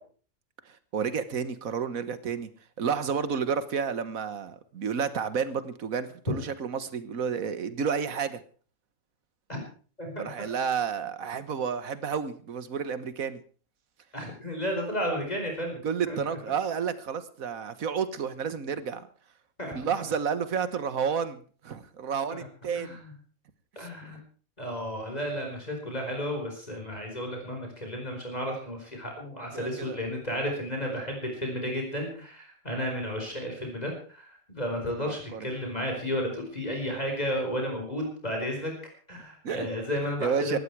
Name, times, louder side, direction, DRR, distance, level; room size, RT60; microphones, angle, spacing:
voice 1, 0.7-2.5 2.8-8.4 10.2-13.4 15.8-19.1 19.7-23.0 23.8-24.2 29.5-30.0 35.0-35.5 39.4-39.7 40.2-40.6, right 6 dB, 80° right, 13 dB, 1.7 m, -31 dB
voice 2, 10.0-10.3 14.1-15.8 16.1-16.4 19.6-19.7 22.3-22.4 22.7-23.1 23.7-24.2 24.6-38.7 39.1-40.6, equal, 30° left, 2 dB, 4.8 m, -33 dB
18.5 x 14.0 x 4.7 m, 0.41 s
omnidirectional pair, 1.4 m